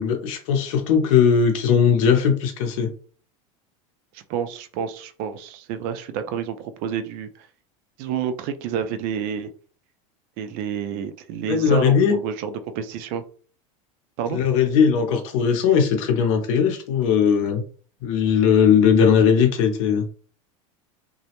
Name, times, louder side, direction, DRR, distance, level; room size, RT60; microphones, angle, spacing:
voice 1, 0.0-2.9 11.5-12.2 14.3-17.6 18.0-20.1, left 7 dB, 70° left, 6 dB, 0.7 m, -19 dB
voice 2, 4.1-7.5 8.0-9.5 10.4-13.2 14.2-14.4, right 8 dB, 55° right, 9 dB, 0.4 m, -29 dB
2.2 x 2.0 x 2.9 m, 0.42 s
supercardioid pair, 115°, 18 cm